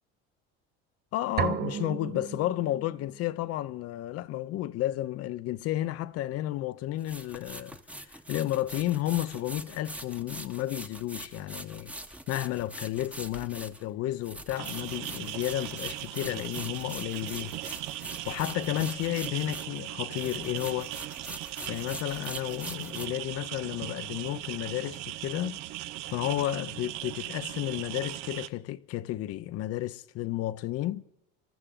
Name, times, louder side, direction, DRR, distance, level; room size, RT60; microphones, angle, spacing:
voice 1, 1.1-11.9 12.3-17.5 18.3-21.0 21.7-25.6 26.1-31.0, left 14 dB, 55° left, 0.6 m, -32 dB
sound 1, 1.4-3.2, right 9 dB, 35° right, 0.6 m, -33 dB
sound 2, 5.5-5.6 7.0-19.9 20.1-23.1, right 1 dB, 5° right, 0.9 m, -43 dB
sound 3, 14.6-28.5, right 15 dB, 75° right, 0.8 m, -38 dB
27.0 x 13.5 x 3.7 m
supercardioid pair, 115°, 29 cm